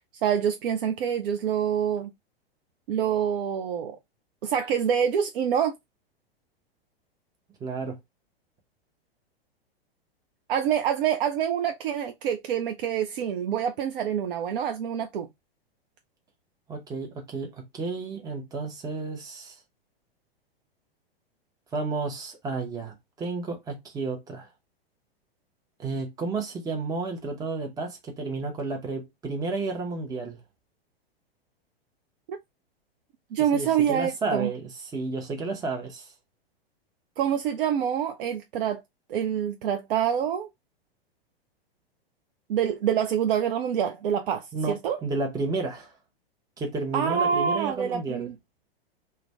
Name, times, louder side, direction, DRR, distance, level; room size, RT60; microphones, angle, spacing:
voice 1, 0.2-2.1 2.9-4.0 4.4-5.7 10.5-15.3 32.3-32.4 33.3-34.5 37.2-38.8 39.1-40.5 42.5-45.0 46.9-48.3, right 8 dB, 60° right, 0.5 m, -26 dB
voice 2, 7.6-8.0 16.7-19.6 21.7-24.5 25.8-30.4 33.5-36.1 44.5-44.8 45.0-45.9 46.6-48.3, right 3 dB, 10° right, 0.7 m, -32 dB
2.4 x 2.2 x 3.2 m
hypercardioid pair, 105°, 31 cm